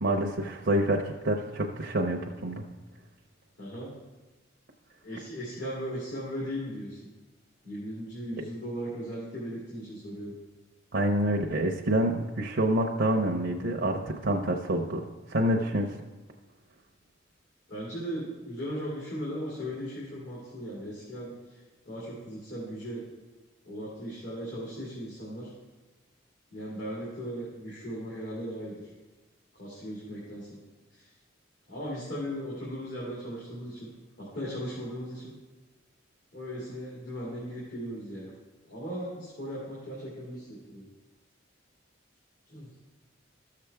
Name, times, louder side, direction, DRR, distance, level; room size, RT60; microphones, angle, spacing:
voice 1, 0.0-2.6 8.4-8.5 10.9-15.9, right 1 dB, 60° right, 0 dB, 0.7 m, -27 dB
voice 2, 3.6-3.9 5.0-7.0 7.6-10.3 17.7-23.0 23.6-25.5 26.5-28.9 29.5-30.5 30.9-31.1 31.7-33.9 34.2-35.3 36.3-38.3 38.6-40.9 42.5-42.7, equal, 65° left, -7 dB, 2.5 m, -37 dB
13.5 x 6.7 x 3.4 m, 1.2 s
head